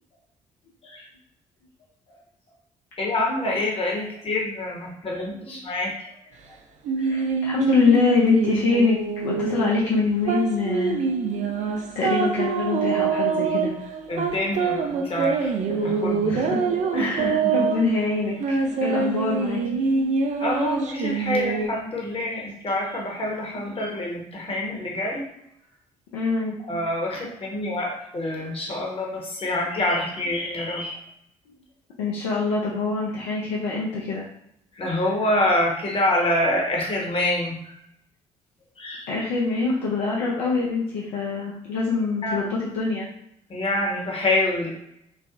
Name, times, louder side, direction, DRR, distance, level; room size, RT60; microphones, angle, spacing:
voice 1, 3.0-5.9 14.1-16.3 16.9-17.5 20.4-25.2 26.7-31.0 34.8-37.7 38.8-39.0 42.2-42.5 43.5-44.7, left 1 dB, 35° left, -2 dB, 1.0 m, -26 dB
sound 1, 6.8-21.7, right 5 dB, 45° right, 0.4 m, -25 dB
voice 2, 7.0-11.0 12.0-13.7 16.3-16.6 16.9-19.8 26.1-26.6 32.0-34.3 39.1-43.1, left 4 dB, 65° left, -5 dB, 0.5 m, -24 dB
3.3 x 2.1 x 2.4 m, 0.75 s
figure-of-eight pair, 40°, 17 cm